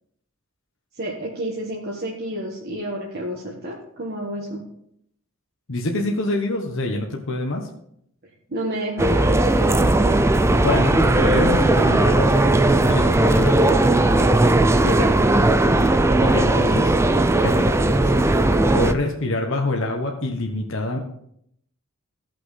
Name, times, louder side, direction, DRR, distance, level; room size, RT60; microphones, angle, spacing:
voice 1, 1.0-4.6 8.5-10.0 14.8-15.2, right 1 dB, 50° right, -4 dB, 1.5 m, -30 dB
voice 2, 5.7-7.7 10.6-14.1 16.2-16.9 17.4-18.0 18.7-21.0, left 2 dB, 65° left, 1 dB, 1.1 m, -26 dB
sound 1, 9.0-18.9, right 2 dB, 15° right, 0.4 m, -17 dB
16.0 x 6.0 x 3.3 m, 0.72 s
head